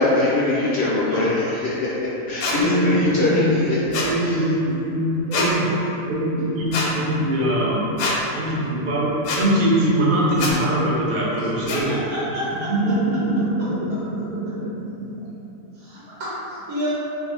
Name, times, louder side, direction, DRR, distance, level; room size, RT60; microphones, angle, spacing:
voice 1, 0.0-2.0 2.3-3.7 4.2-4.4, left 2 dB, 65° left, -7 dB, 0.7 m, -21 dB
sound 1, 2.4-2.6 3.9-4.1 5.3-5.5 6.7-6.9 8.0-8.2 9.2-9.4 10.4-10.5 11.7-11.8, left 3 dB, 90° left, 1.1 m, -24 dB
voice 2, 2.5-3.6 3.9-5.7 6.1-7.8 8.3-11.9 12.7-13.5, right 1 dB, 50° right, -6 dB, 0.6 m, -22 dB
voice 3, 11.3-12.7 15.7-16.9, equal, 90° right, -9 dB, 1.2 m, -30 dB
2.6 x 2.4 x 4.1 m, 3.0 s
omnidirectional pair, 1.5 m